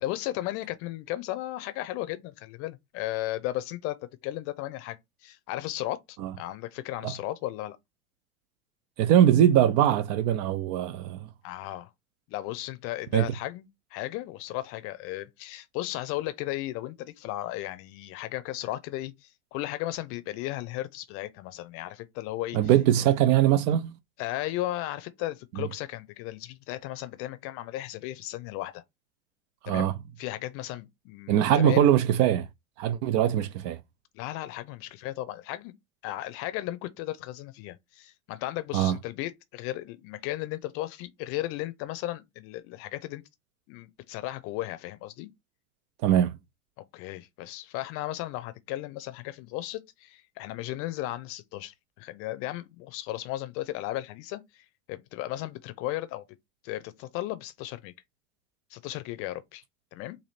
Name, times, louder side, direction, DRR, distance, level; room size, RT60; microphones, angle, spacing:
voice 1, 0.0-7.8 11.4-11.9 12.3-22.6 23.0-23.1 24.2-28.8 29.7-29.9 30.2-31.9 34.1-35.7 36.0-43.2 43.7-45.3 46.9-56.2 56.6-57.9 58.7-59.6 59.9-60.2, left 15 dB, 35° left, 0.7 m, -35 dB
voice 2, 9.0-11.3 13.1-13.3 22.5-23.9 25.6-25.7 29.6-29.9 31.3-32.5 32.8-33.8 38.7-39.0 46.0-46.3, right 11 dB, 35° right, 0.5 m, -22 dB
3.4 x 2.6 x 4.1 m
figure-of-eight pair, 85°, 37 cm